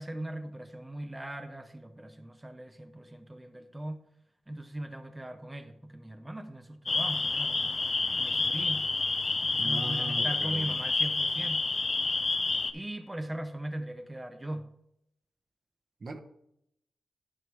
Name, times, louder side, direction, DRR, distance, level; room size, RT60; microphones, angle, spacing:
voice 1, 0.0-4.0 4.5-7.7 8.2-8.9 9.4-11.7 12.7-14.7, right 1 dB, 15° right, 7 dB, 0.7 m, -39 dB
sound 1, 6.9-12.7, left 3 dB, 40° left, 0.7 m, -29 dB
voice 2, 9.6-10.8 16.0-16.2, right 2 dB, 50° right, 5 dB, 1.0 m, -39 dB
11.0 x 5.8 x 3.4 m, 0.77 s
cardioid pair, 60°, 0 cm